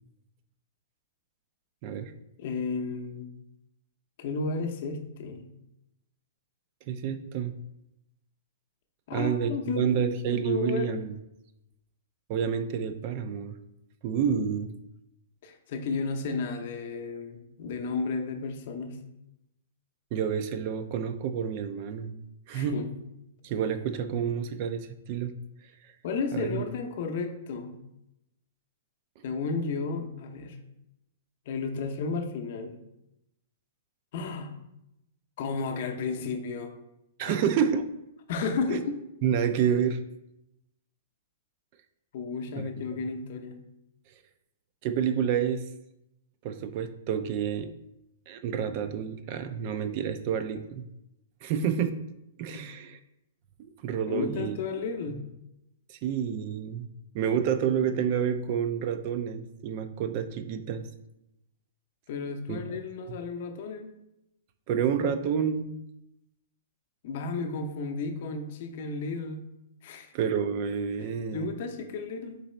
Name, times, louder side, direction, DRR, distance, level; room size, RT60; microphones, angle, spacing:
voice 1, 2.4-3.3 4.2-5.5 9.1-9.9 10.3-11.0 15.4-19.0 22.5-22.9 26.0-27.7 29.2-30.6 31.5-32.8 34.1-34.5 35.4-36.7 37.3-37.4 38.3-38.9 42.1-43.6 52.5-52.7 54.1-55.2 62.1-64.0 67.0-69.4 69.8-70.1 71.0-72.4, left 4 dB, 50° left, 5 dB, 0.6 m, -33 dB
voice 2, 6.9-7.5 9.1-11.1 12.3-13.6 14.0-14.7 20.1-22.2 22.5-22.8 23.4-25.3 26.3-26.6 37.2-37.9 38.7-38.8 39.2-40.0 42.6-42.7 44.8-45.7 46.4-47.7 48.3-50.8 51.4-52.0 52.4-53.0 53.6-54.6 55.9-56.9 57.1-60.9 62.5-62.8 64.7-65.7 70.1-71.5, right 7 dB, 40° right, 10 dB, 0.3 m, -29 dB
4.0 x 3.0 x 4.2 m, 0.86 s
hypercardioid pair, 150°, 0 cm